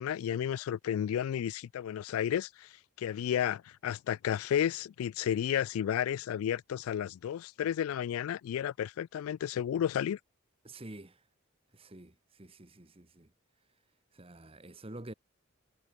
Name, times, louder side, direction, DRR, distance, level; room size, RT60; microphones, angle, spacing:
voice 1, 0.0-2.7 3.0-10.2, left 9 dB, 90° left, 0.3 m, -32 dB
voice 2, 10.6-11.3 11.7-13.3 14.1-15.1, right 1 dB, 25° right, 1.4 m, -48 dB
head